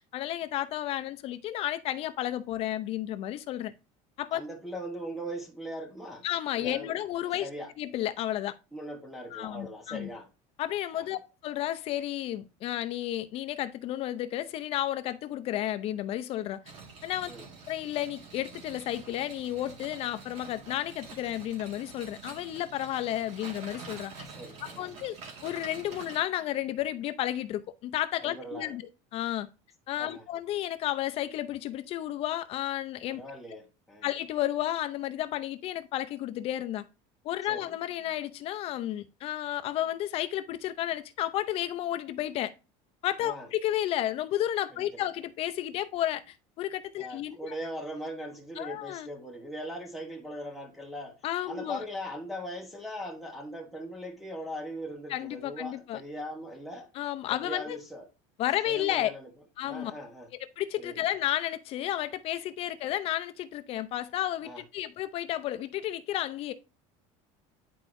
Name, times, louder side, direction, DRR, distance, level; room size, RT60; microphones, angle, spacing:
voice 1, 0.1-3.7 4.2-4.4 6.2-7.5 7.8-8.6 9.3-10.1 10.6-16.6 17.0-17.3 17.7-24.3 24.6-25.2 25.4-28.8 29.1-29.5 29.9-33.2 34.0-36.8 37.2-42.5 43.0-47.5 48.6-49.1 51.2-51.8 55.1-56.0 56.9-57.8 58.4-59.1 59.6-59.9 60.6-66.5, left 13 dB, 40° left, 0.6 m, -32 dB
voice 2, 4.3-6.2 6.5-6.9 7.4-7.7 8.7-10.3 10.9-11.2 17.3-17.5 24.4-25.0 28.2-28.8 30.0-30.3 33.1-34.1 37.5-37.7 43.2-43.5 44.7-45.1 47.0-51.2 51.5-56.9 57.3-58.1 58.7-59.3 59.6-60.3 60.8-61.0 64.4-64.6, equal, ahead, 1.1 m, -40 dB
sound 1, 16.6-26.2, right 4 dB, 45° right, 1.9 m, -47 dB
10.0 x 4.6 x 2.6 m
cardioid pair, 165°, 15 cm